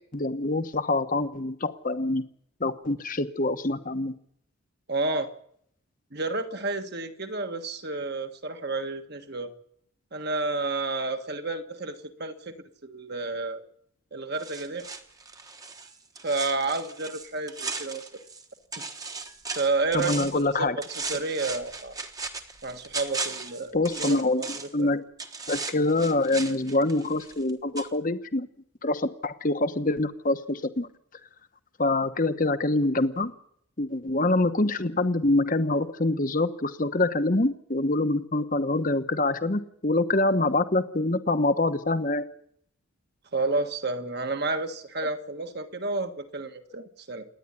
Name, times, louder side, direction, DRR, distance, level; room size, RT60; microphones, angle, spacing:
voice 1, 0.1-2.2 2.6-4.1 19.9-20.8 23.7-25.0 25.5-28.5 28.8-30.9 31.8-33.3 33.8-42.2, left 2 dB, 40° left, 11 dB, 1.1 m, -25 dB
voice 2, 4.9-5.3 6.1-9.5 10.1-12.5 12.8-13.6 14.1-14.9 16.2-18.2 19.5-20.7 21.1-21.9 22.6-24.5 24.8-24.9 43.3-47.3, right 3 dB, 50° right, 6 dB, 1.6 m, -30 dB
sound 1, 14.4-18.4 18.7-20.5 20.8-24.8 25.2-27.5 27.8-27.9, right 4 dB, 15° right, 1.2 m, -37 dB
27.5 x 10.0 x 9.9 m, 0.70 s
head